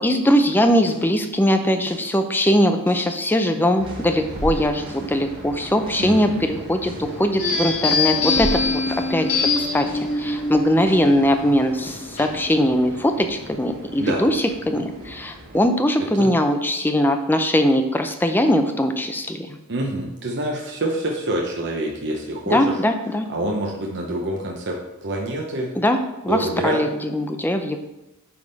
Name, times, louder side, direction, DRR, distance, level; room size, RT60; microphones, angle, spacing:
voice 1, 0.0-8.8 9.1-9.9 10.2-19.6 22.5-23.3 25.8-26.0 26.2-27.8, equal, 10° left, 7 dB, 0.5 m, -21 dB
sound 1, 0.6-1.2 1.9-2.2 2.9-3.2 3.9-5.2 5.9-6.2 6.9-7.2 7.9-9.2 9.9-10.2 10.9-11.2 11.9-12.2, equal, 25° right, 1.0 m, -35 dB
sound 2, 3.8-15.7, right 1 dB, 75° right, 2.6 m, -40 dB
voice 2, 6.0-6.5 14.0-14.3 16.2-16.3 19.7-22.8 23.3-25.7 26.3-26.8, right 1 dB, 55° right, -1 dB, 0.8 m, -26 dB
sound 3, 7.4-12.6, left 3 dB, 70° left, 1.5 m, -24 dB
9.7 x 3.6 x 4.0 m, 0.98 s
head